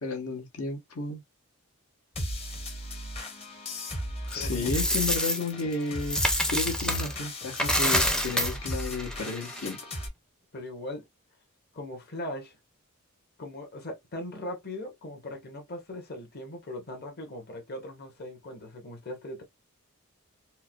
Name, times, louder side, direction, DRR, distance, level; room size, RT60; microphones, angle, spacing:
voice 1, 0.0-1.2 4.3-6.2 6.5-9.8, left 3 dB, 75° left, 1.2 m, -32 dB
sound 1, 2.2-10.1, equal, 25° left, 0.8 m, -36 dB
voice 2, 4.3-4.7 10.5-11.1 11.7-12.5 13.4-19.4, left 1 dB, 45° left, 1.1 m, -39 dB
Coin (dropping), 4.3-7.1 7.5-9.7, equal, 5° left, 0.4 m, -28 dB
4.5 x 2.1 x 2.2 m
head